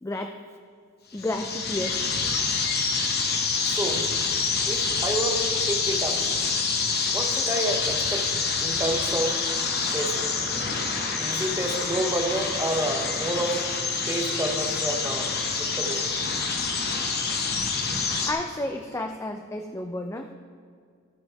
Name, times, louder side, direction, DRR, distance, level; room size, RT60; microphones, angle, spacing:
voice 1, 0.0-0.4 1.1-2.1 18.3-20.3, left 1 dB, 15° left, 5 dB, 0.4 m, -31 dB
sound 1, 1.1-18.3, left 4 dB, 50° left, 0.9 m, -27 dB
voice 2, 3.7-4.0 4.7-6.2 7.1-8.2 8.6-9.3 9.9-10.3 11.2-13.6 14.1-16.0, right 1 dB, 15° right, 2 dB, 0.9 m, -29 dB
14.0 x 5.3 x 4.7 m, 2.1 s
head